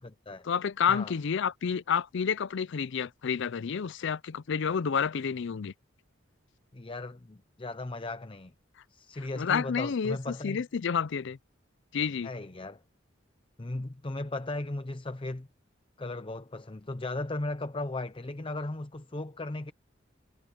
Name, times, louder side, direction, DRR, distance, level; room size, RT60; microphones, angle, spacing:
voice 1, 0.5-5.7 9.4-11.4 11.9-12.3, left 6 dB, 65° left, 0.5 m, -29 dB
voice 2, 6.7-8.5 8.9-10.6 12.2-12.8 13.6-15.5 16.0-19.7, left 2 dB, 25° left, 0.7 m, -36 dB
head